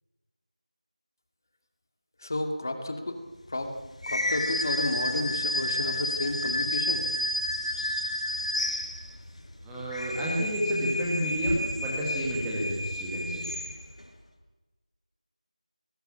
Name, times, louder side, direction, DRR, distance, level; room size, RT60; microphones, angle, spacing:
voice 1, 2.2-3.2 3.5-3.7 4.1-7.0, left 1 dB, 30° left, 5 dB, 2.4 m, -31 dB
sound 1, 4.0-9.3 9.8-14.0, left 1 dB, 60° left, 4.8 m, -31 dB
voice 2, 9.6-13.4, equal, 5° right, -5 dB, 2.0 m, -30 dB
22.5 x 20.5 x 8.7 m, 1.2 s
figure-of-eight pair, 175°, 4 cm